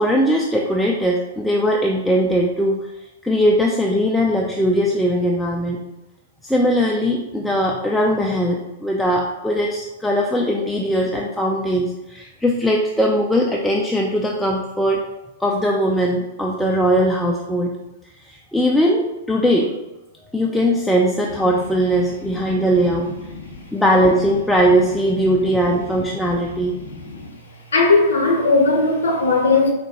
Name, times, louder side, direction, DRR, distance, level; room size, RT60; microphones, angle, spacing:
voice 1, 0.0-2.9 3.2-5.8 6.4-15.0 15.4-17.7 18.2-19.7 20.3-23.1 23.7-26.7, equal, ahead, -2 dB, 0.3 m, -19 dB
voice 2, 23.4-23.7 26.4-26.5 26.8-27.3 27.7-29.7, left 3 dB, 70° left, 0 dB, 0.7 m, -18 dB
4.5 x 2.2 x 2.9 m, 1.0 s
figure-of-eight pair, 105°, 0 cm